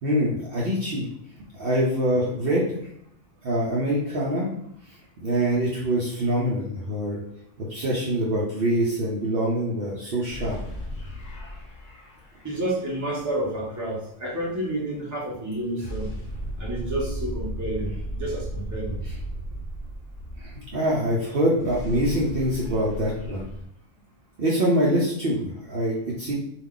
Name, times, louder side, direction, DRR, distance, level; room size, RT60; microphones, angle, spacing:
voice 1, 0.0-1.1 1.5-2.8 3.4-4.5 5.2-7.2 7.6-10.6 19.0-19.2 20.4-23.5 24.4-26.3, equal, 60° right, -5 dB, 0.7 m, -24 dB
sound 1, 10.3-13.2 15.8-21.2 21.4-23.6, right 1 dB, 50° left, 0.8 m, -35 dB
voice 2, 12.4-16.1 16.6-19.0, right 1 dB, 20° right, -5 dB, 0.6 m, -30 dB
2.3 x 2.3 x 3.6 m, 0.70 s
omnidirectional pair, 1.3 m